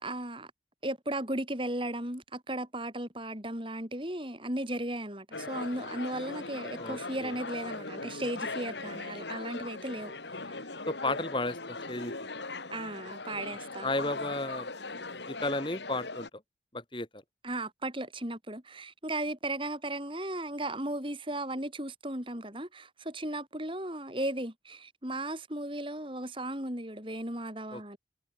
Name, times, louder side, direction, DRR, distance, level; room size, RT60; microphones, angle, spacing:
voice 1, 0.0-0.5 0.8-10.1 12.7-13.9 17.4-28.0, right 1 dB, 30° right, 5.6 m, -36 dB
sound 1, 5.3-16.3, left 3 dB, 75° left, 3.1 m, -39 dB
voice 2, 6.8-7.3 10.9-12.1 13.8-14.7 15.3-16.3 16.7-17.2 27.7-28.0, left 2 dB, 25° left, 4.0 m, -33 dB
head